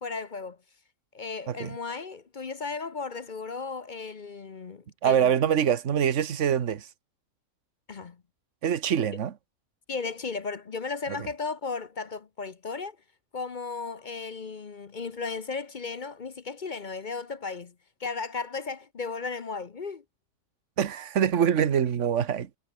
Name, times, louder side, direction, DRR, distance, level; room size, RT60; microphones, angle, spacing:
voice 1, 0.0-0.6 1.1-5.3 7.9-8.2 9.9-13.0 13.3-17.7 18.0-20.0, left 4 dB, 40° left, 0.9 m, -35 dB
voice 2, 5.0-6.9 8.6-9.3 11.2-11.3 20.8-22.5, right 8 dB, 60° right, 1.5 m, -24 dB
omnidirectional pair, 1.4 m